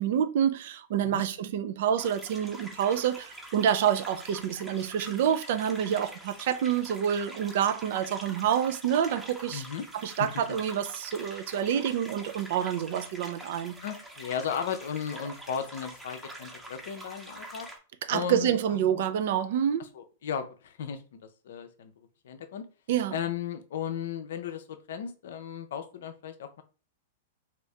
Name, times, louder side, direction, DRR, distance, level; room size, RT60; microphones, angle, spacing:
voice 1, 0.0-9.6 9.9-13.8 18.1-19.9 22.9-23.2, right 9 dB, 55° right, 0.4 m, -27 dB
sound 1, 2.0-17.8, right 1 dB, 10° right, 0.8 m, -45 dB
voice 2, 9.5-9.8 10.2-10.3 13.8-17.7 18.1-19.0 19.9-21.2 21.4-21.9 22.2-22.6 23.1-26.6, left 7 dB, 65° left, 0.5 m, -35 dB
2.9 x 2.6 x 3.3 m
figure-of-eight pair, 105°, 0 cm